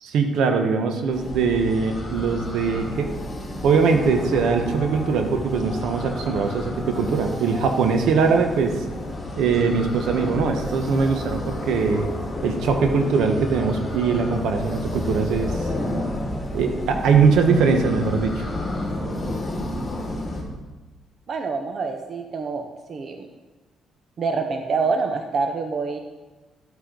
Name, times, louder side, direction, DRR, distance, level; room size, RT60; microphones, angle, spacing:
voice 1, 0.0-3.1 3.6-8.8 9.4-12.1 12.4-15.7 16.5-18.5, right 5 dB, 80° right, 5 dB, 1.2 m, -21 dB
sound 1, 1.1-20.4, left 1 dB, 20° left, 2.8 m, -31 dB
voice 2, 21.3-23.3 24.2-26.0, right 4 dB, 50° right, 5 dB, 0.9 m, -26 dB
12.0 x 8.4 x 4.0 m, 1.2 s
cardioid pair, 90°, 0 cm